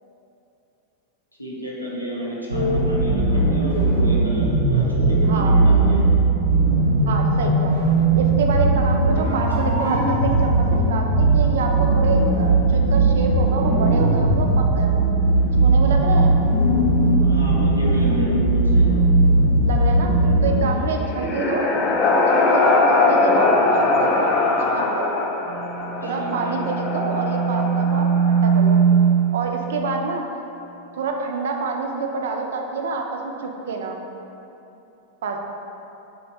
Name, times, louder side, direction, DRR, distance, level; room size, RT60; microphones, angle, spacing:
voice 1, 1.4-6.1 17.2-18.9 20.2-21.0 26.0-26.6, equal, 90° left, -6 dB, 0.6 m, -31 dB
sound 1, 2.5-20.7, right 2 dB, 85° right, 0.7 m, -18 dB
voice 2, 5.2-5.6 7.1-15.1 15.6-16.3 19.6-20.1 20.4-21.7 22.3-24.3 24.6-25.1 26.0-28.8 29.3-30.3 30.9-34.0 35.2-35.4, right 3 dB, 60° right, 2 dB, 0.3 m, -27 dB
sound 2, 20.7-28.6, left 3 dB, 35° left, 0.4 m, -21 dB
sound 3, 25.5-29.4, right 6 dB, 15° right, 0.6 m, -20 dB
3.5 x 2.5 x 3.2 m, 2.9 s
figure-of-eight pair, 90°, 0 cm